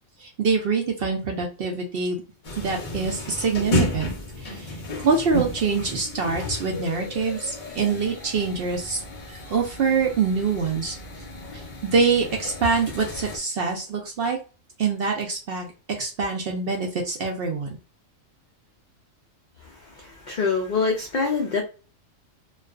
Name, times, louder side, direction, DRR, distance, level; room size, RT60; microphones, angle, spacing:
voice 1, 0.2-2.2 2.6-9.0 9.3-11.0 11.5-14.4 14.8-17.8, right 5 dB, 65° right, 0.6 m, -25 dB
sound 1, 2.4-13.4, left 1 dB, 45° left, 0.8 m, -32 dB
voice 2, 19.6-21.6, left 4 dB, 80° left, 0.4 m, -25 dB
2.4 x 2.2 x 2.3 m
omnidirectional pair, 1.4 m